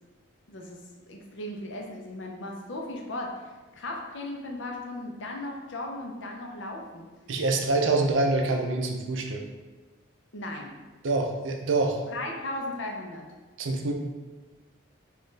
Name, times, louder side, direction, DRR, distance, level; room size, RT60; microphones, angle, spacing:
voice 1, 0.5-7.1 10.3-10.8 12.1-13.2, left 1 dB, 65° left, 1 dB, 0.6 m, -37 dB
voice 2, 7.3-9.4 11.0-12.0 13.6-13.9, right 3 dB, 65° right, 2 dB, 0.5 m, -25 dB
4.2 x 2.4 x 3.2 m, 1.2 s
head